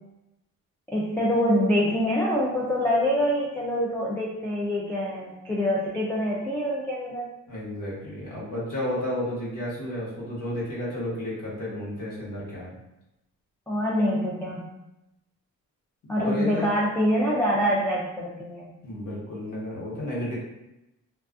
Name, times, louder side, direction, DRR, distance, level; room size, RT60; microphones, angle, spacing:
voice 1, 0.9-7.3 13.7-14.7 16.1-18.6, equal, 5° left, -6 dB, 0.3 m, -25 dB
voice 2, 7.5-12.7 16.1-16.7 18.8-20.3, left 1 dB, 70° left, -6 dB, 1.1 m, -32 dB
2.3 x 2.3 x 2.4 m, 0.92 s
cardioid pair, 115°, 33 cm